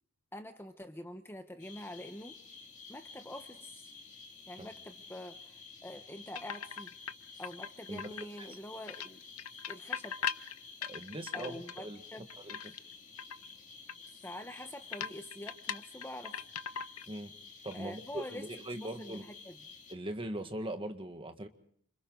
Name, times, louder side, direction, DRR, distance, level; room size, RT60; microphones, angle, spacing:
voice 1, 0.3-2.4 2.9-3.9 4.5-6.9 7.4-9.2 9.7-10.2 11.3-12.3 14.2-16.4 17.7-19.6, left 1 dB, 10° left, 7 dB, 1.1 m, -46 dB
sound 1, 1.6-19.9, left 4 dB, 35° left, 2.5 m, -52 dB
sound 2, 6.3-7.1 7.4-8.5 8.9-11.8 12.1-12.9 13.2-13.5 13.9-14.0 14.2-14.3 14.9-17.2 17.4-17.7, left 8 dB, 90° left, 0.9 m, -39 dB
voice 2, 10.8-12.0 12.4-12.7 17.1-17.3 17.6-19.3 19.9-21.5, right 1 dB, 25° right, 7 dB, 1.8 m, -41 dB
29.0 x 27.0 x 3.9 m, 0.64 s
head